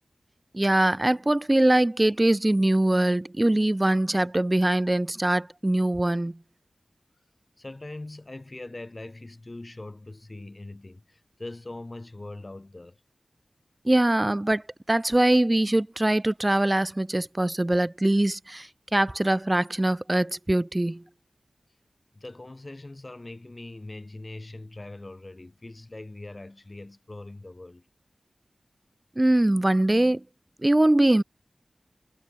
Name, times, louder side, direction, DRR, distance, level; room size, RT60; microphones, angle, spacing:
voice 1, 0.5-6.4 13.8-21.0 29.2-30.2 30.6-31.2, right 1 dB, 20° right, 0.5 m, -22 dB
voice 2, 7.6-13.0 22.1-27.8, left 2 dB, 35° left, 2.8 m, -41 dB
wide cardioid pair, 75°, 0 cm